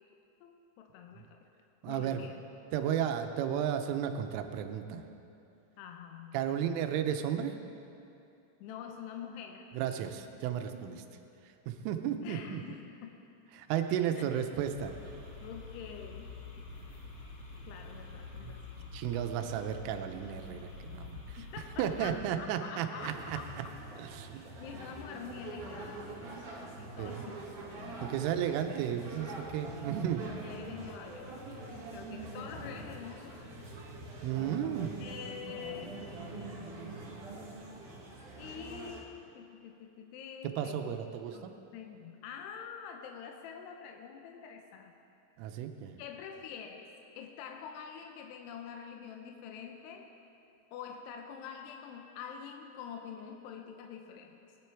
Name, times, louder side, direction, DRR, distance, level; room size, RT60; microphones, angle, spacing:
voice 1, 0.4-1.5 1.9-2.4 5.8-6.5 8.6-9.7 12.2-13.2 14.2-14.6 15.4-16.3 17.6-18.9 21.4-23.8 24.6-27.4 27.7-28.6 30.4-31.6 31.9-33.6 35.0-36.1 38.4-41.0 41.3-44.9 46.0-46.9 47.2-50.1 50.7-54.4, left 7 dB, 80° left, 3 dB, 2.5 m, -46 dB
voice 2, 1.8-2.2 2.7-5.0 6.3-7.5 9.7-11.0 11.7-12.6 13.6-14.9 18.4-18.5 18.9-21.2 21.8-23.4 24.0-24.4 27.0-27.3 28.0-30.3 34.2-34.9 40.6-41.5 45.4-46.0, right 9 dB, 90° right, 7 dB, 3.3 m, -33 dB
sound 1, 14.8-22.2, left 3 dB, 55° left, 1.7 m, -47 dB
sound 2, 23.0-39.0, right 2 dB, 50° right, 2.8 m, -44 dB
20.0 x 11.0 x 4.6 m, 2.7 s
omnidirectional pair, 5.6 m